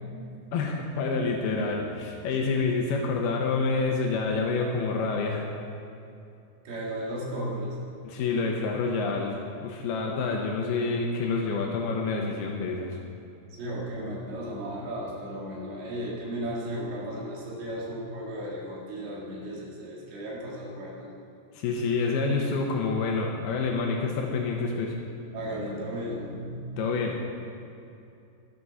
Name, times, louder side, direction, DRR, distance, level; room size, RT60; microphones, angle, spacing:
voice 1, 0.5-5.5 8.0-13.0 21.5-24.9 26.8-27.2, left 4 dB, 80° left, 1 dB, 2.8 m, -28 dB
voice 2, 6.7-7.8 13.5-21.1 25.3-26.9, right 1 dB, 80° right, -4 dB, 4.1 m, -35 dB
12.5 x 11.5 x 4.1 m, 2.6 s
omnidirectional pair, 4.5 m